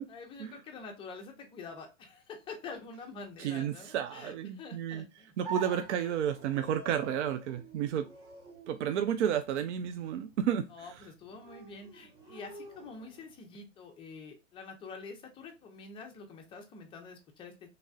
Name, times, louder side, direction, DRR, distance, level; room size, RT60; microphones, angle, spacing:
voice 1, 0.1-5.3 6.0-6.1 10.7-17.7, left 4 dB, 15° left, 0.5 m, -47 dB
voice 2, 3.4-5.0 5.4-8.1 8.7-10.7, right 9 dB, 65° right, 0.5 m, -31 dB
sound 1, 5.4-13.4, right 4 dB, 35° right, 1.0 m, -47 dB
3.3 x 2.5 x 2.3 m
hypercardioid pair, 130°, 37 cm